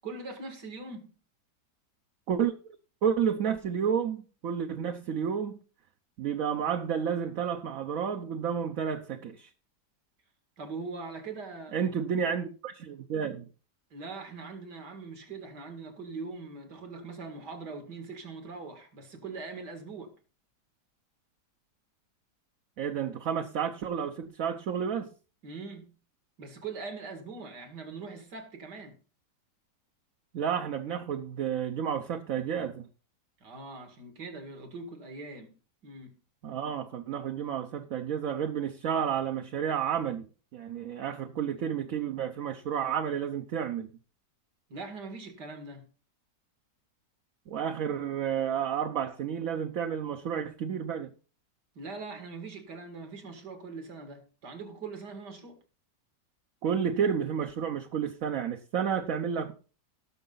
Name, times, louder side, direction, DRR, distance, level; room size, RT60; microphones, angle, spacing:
voice 1, 0.0-1.1 10.6-11.8 13.9-20.1 25.4-25.9 26.4-29.0 33.4-35.5 35.8-36.2 44.7-45.8 51.8-55.6, right 4 dB, 75° right, 2.7 m, -42 dB
voice 2, 3.0-5.6 6.2-9.5 11.7-13.5 22.8-25.1 30.3-32.9 36.4-40.3 40.5-43.9 47.5-51.1 56.6-59.5, right 8 dB, 60° right, 1.2 m, -31 dB
18.0 x 6.7 x 3.9 m
omnidirectional pair, 1.8 m